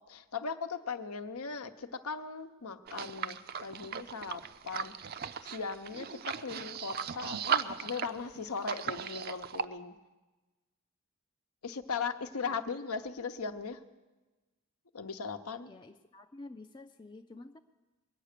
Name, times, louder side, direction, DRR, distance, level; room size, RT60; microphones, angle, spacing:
voice 1, 0.1-9.9 11.6-13.8 14.9-15.7, left 5 dB, 90° left, 8 dB, 0.9 m, -38 dB
sound 1, 2.9-9.6, right 7 dB, 45° right, 0.4 m, -37 dB
voice 2, 15.7-17.6, left 2 dB, 20° left, 4 dB, 0.4 m, -49 dB
22.0 x 8.8 x 6.7 m, 1.2 s
head